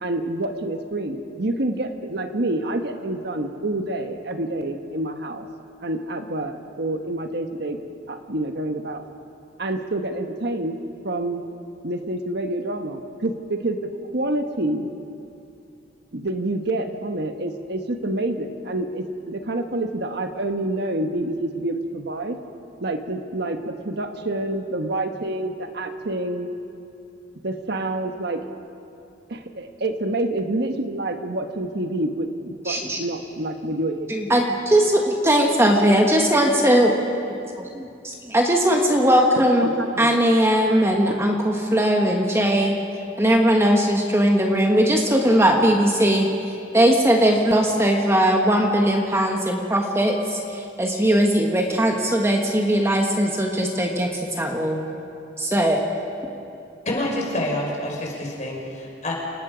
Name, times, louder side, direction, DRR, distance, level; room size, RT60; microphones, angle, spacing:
voice 1, 0.0-5.5 5.8-7.8 8.1-9.0 9.6-10.8 11.0-11.4 11.8-14.9 16.1-22.4 22.8-26.5 27.4-28.4 29.3-34.2 39.4-40.1 41.1-41.2, right 1 dB, 65° right, 6 dB, 1.2 m, -27 dB
voice 2, 32.7-33.0 34.1-36.9 38.3-39.7 40.0-42.8 43.2-46.3 46.7-54.8 55.4-55.8, equal, 15° right, 1 dB, 1.4 m, -19 dB
voice 3, 56.8-59.1, left 1 dB, 40° left, -1 dB, 5.0 m, -27 dB
29.0 x 18.5 x 5.1 m, 2.7 s
head